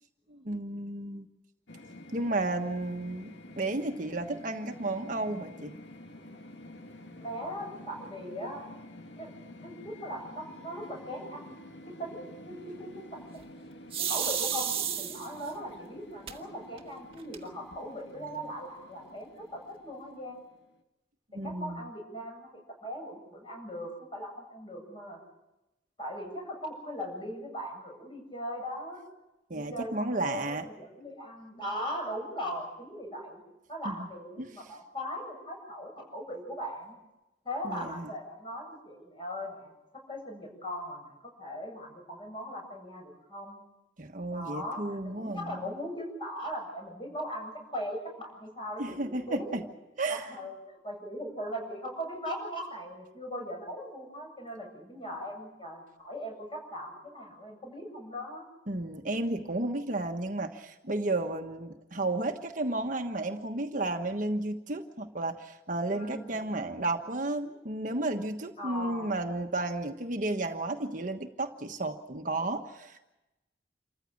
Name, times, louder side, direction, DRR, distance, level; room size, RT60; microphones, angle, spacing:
voice 1, 0.3-1.3 2.1-5.7 21.3-21.8 29.5-30.6 33.8-33.9 34.4-34.7 37.6-38.1 44.0-45.7 48.8-49.6 50.0-50.3 58.7-73.0, right 2 dB, 45° right, 5 dB, 1.3 m, -33 dB
sound 1, 1.7-20.8, left 1 dB, 80° left, 1.9 m, -49 dB
voice 2, 7.2-8.7 9.2-9.3 9.6-13.2 14.0-20.4 21.4-25.2 26.0-29.0 29.5-33.4 33.7-37.0 37.4-39.7 40.1-43.6 44.3-44.8 45.1-49.5 50.1-58.5 65.9-66.4 68.6-69.1, equal, 30° left, 1 dB, 7.8 m, -39 dB
sound 2, 13.9-15.5 16.3-16.4 16.8-16.9 17.1-17.7, right 9 dB, 30° right, 1.6 m, -31 dB
28.0 x 15.0 x 8.5 m, 0.98 s
head